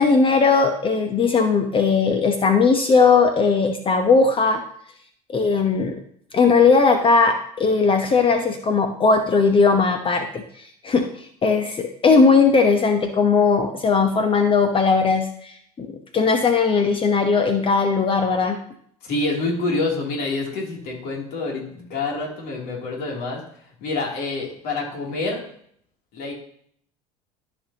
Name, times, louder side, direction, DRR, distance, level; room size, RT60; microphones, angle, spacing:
voice 1, 0.0-4.6 5.3-6.0 6.3-10.4 10.8-18.6, left 4 dB, 30° left, 6 dB, 0.9 m, -18 dB
voice 2, 19.0-23.4 23.8-25.4 26.1-26.3, left 3 dB, 55° left, -1 dB, 3.0 m, -27 dB
14.5 x 5.3 x 2.9 m, 0.64 s
hypercardioid pair, 70°, 19 cm